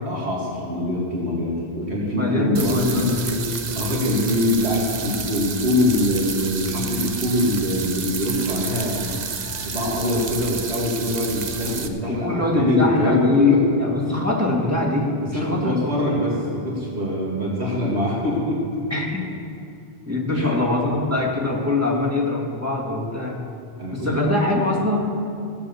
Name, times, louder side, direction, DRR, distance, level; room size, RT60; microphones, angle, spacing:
voice 1, 0.1-3.1 3.7-9.2 9.6-13.6 15.2-18.8 20.3-20.6 23.8-24.3, left 1 dB, 70° right, -5 dB, 2.5 m, -23 dB
voice 2, 2.1-3.4 12.1-15.8 16.1-16.2 18.9-19.2 20.1-23.4 23.9-25.0, left 2 dB, 15° right, -2 dB, 2.0 m, -23 dB
sound 1, 2.6-11.9, right 5 dB, 45° right, 0.8 m, -30 dB
15.5 x 7.7 x 7.1 m, 2.4 s
omnidirectional pair, 1.1 m